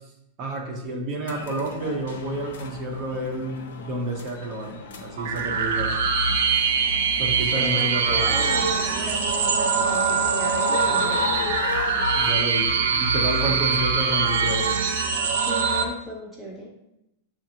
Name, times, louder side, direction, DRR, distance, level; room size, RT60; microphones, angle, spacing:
voice 1, 0.4-6.0 7.2-8.2 12.1-14.7, right 1 dB, 35° right, 1 dB, 0.9 m, -30 dB
sound 1, 1.3-12.3, left 4 dB, 90° left, 0.7 m, -35 dB
sound 2, 5.2-15.8, right 5 dB, 90° right, 0.5 m, -23 dB
voice 2, 7.5-11.5 13.4-13.6 15.4-16.7, equal, ahead, -4 dB, 0.5 m, -35 dB
7.2 x 2.6 x 2.8 m, 0.86 s
supercardioid pair, 160°, 0 cm